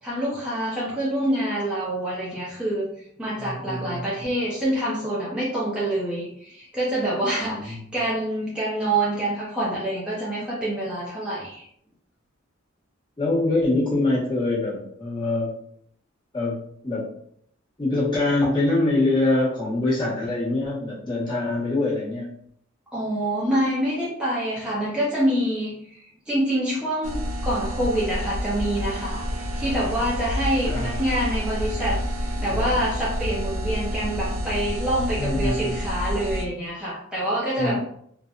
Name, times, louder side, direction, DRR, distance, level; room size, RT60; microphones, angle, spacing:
voice 1, 0.0-2.9 3.2-11.7 22.9-37.8, right 1 dB, 5° right, -8 dB, 0.4 m, -26 dB
voice 2, 3.4-4.0 7.4-7.9 13.2-15.5 16.3-17.0 17.8-22.3 30.6-31.0 32.5-32.8 35.2-35.8 37.6-37.8, left 2 dB, 20° left, -9 dB, 1.1 m, -24 dB
sound 1, 27.0-36.4, equal, 80° right, 0.4 m, -29 dB
2.8 x 2.0 x 2.4 m, 0.69 s
head